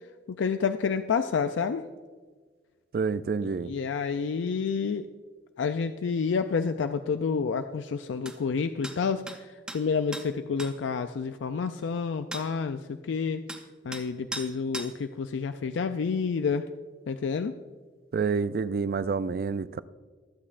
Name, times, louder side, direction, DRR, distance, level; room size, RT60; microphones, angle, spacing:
voice 1, 0.3-1.8 3.6-5.1 5.6-13.4 13.8-16.6 17.1-17.5, left 5 dB, 85° left, 0.4 m, -29 dB
voice 2, 2.9-3.7 18.1-19.8, right 5 dB, 50° right, 0.3 m, -28 dB
sound 1, 8.3-8.4 8.8-9.0 9.3-9.4 9.7-9.8 10.1-10.3 10.6-10.7 12.3-12.5 13.5-13.6 13.9-14.1 14.3-14.5 14.7-14.9, right 1 dB, 5° right, 0.6 m, -37 dB
23.5 x 8.5 x 2.5 m
head